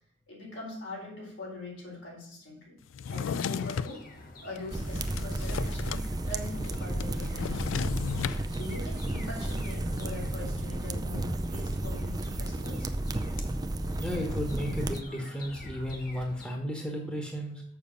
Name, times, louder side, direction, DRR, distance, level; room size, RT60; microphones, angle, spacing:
voice 1, 0.3-2.7 3.1-4.1 4.4-7.9 8.5-12.9, left 2 dB, 70° left, -2 dB, 4.2 m, -42 dB
Drawer open or close, 2.9-4.0 4.6-6.1 6.3-6.4 6.6-8.4, left 6 dB, 90° left, 0.3 m, -34 dB
sound 1, 3.0-16.6, left 1 dB, 45° left, 1.2 m, -47 dB
sound 2, 4.7-15.0, right 1 dB, 20° right, 0.5 m, -33 dB
voice 2, 14.0-17.6, equal, 5° left, 1 dB, 1.3 m, -34 dB
7.0 x 6.6 x 5.2 m, 0.66 s
head